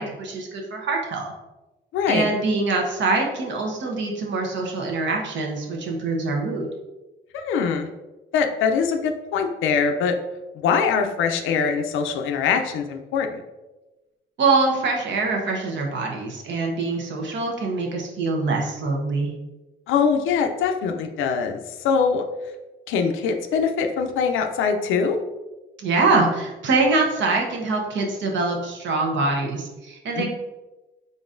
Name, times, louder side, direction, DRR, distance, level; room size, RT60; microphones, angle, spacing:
voice 1, 0.0-1.3 2.1-6.7 14.4-19.3 25.8-30.3, right 3 dB, 65° right, 1 dB, 0.9 m, -24 dB
voice 2, 1.9-2.3 7.3-7.9 8.3-10.1 10.5-13.4 19.9-22.2 22.9-25.2 30.2-30.3, left 6 dB, 85° left, 5 dB, 0.5 m, -23 dB
3.9 x 3.7 x 2.5 m, 1.1 s
cardioid pair, 90°, 20 cm